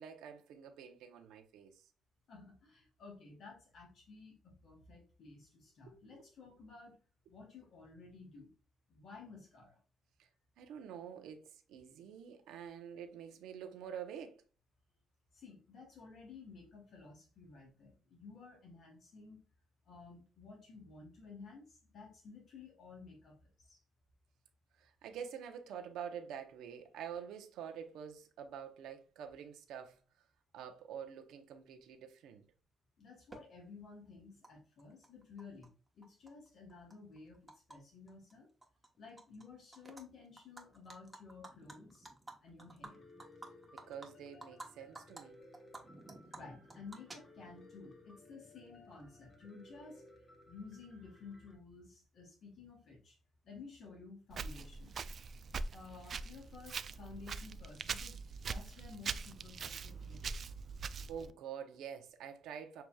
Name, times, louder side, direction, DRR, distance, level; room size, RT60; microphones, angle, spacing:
voice 1, 0.0-1.9 5.8-6.2 7.3-7.4 10.2-10.3 10.6-14.4 24.8-30.0 30.5-32.4 43.7-45.4 61.1-62.8, right 8 dB, 85° right, 0.8 m, -47 dB
voice 2, 2.3-7.0 7.3-8.5 8.9-9.8 15.3-19.4 19.9-23.8 33.0-35.7 35.9-38.5 39.0-42.1 42.4-43.0 46.3-50.0 50.5-53.2 53.4-54.9 55.7-60.4, left 4 dB, 60° left, 1.4 m, -54 dB
Animal, 33.3-33.4 34.4-34.5 34.8-35.7 36.0-37.8 38.1-38.3 38.6-39.4 39.7-40.0 40.4-44.7 44.9-45.2 45.5-47.6, right 2 dB, 15° right, 1.1 m, -52 dB
Piano, 42.8-51.6, left 2 dB, 30° left, 1.3 m, -59 dB
Walk footsteps, 54.3-61.3, right 5 dB, 50° right, 0.3 m, -43 dB
6.7 x 3.0 x 2.3 m
cardioid pair, 90°, 0 cm